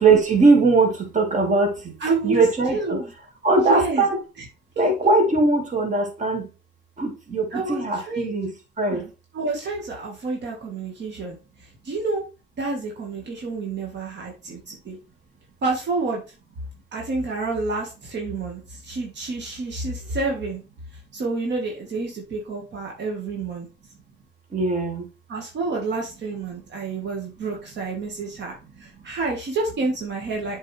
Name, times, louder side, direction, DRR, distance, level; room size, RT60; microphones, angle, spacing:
voice 1, 0.0-1.7 2.2-3.0 3.4-4.2 4.8-6.5 7.0-8.5 8.8-9.0 24.5-25.0, right 3 dB, 40° right, 2.2 m, -20 dB
voice 2, 2.0-2.4 2.7-3.1 3.6-4.0 4.8-4.9 7.5-7.8 8.1-8.3 8.9-11.4 11.9-12.2 12.6-15.0 15.6-16.2 16.9-20.6 21.1-23.7 25.3-28.5 28.8-30.6, right 3 dB, 60° right, 1.7 m, -28 dB
7.8 x 4.5 x 3.3 m
cardioid pair, 90°, 20 cm